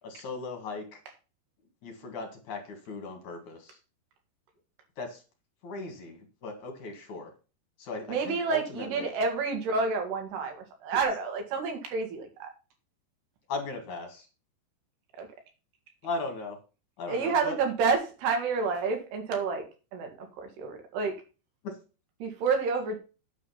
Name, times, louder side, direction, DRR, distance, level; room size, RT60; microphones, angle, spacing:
voice 1, 0.0-1.0 1.8-3.8 5.0-5.2 5.6-7.3 7.8-9.1 13.5-14.3 16.0-16.6 17.0-17.6 21.6-21.7, left 3 dB, 55° left, 4 dB, 2.7 m, -38 dB
voice 2, 8.1-12.5 15.2-15.3 17.1-19.6 19.9-21.1 22.2-23.0, right 4 dB, 75° right, 4 dB, 4.1 m, -29 dB
9.2 x 7.5 x 5.7 m, 0.33 s
omnidirectional pair, 4.8 m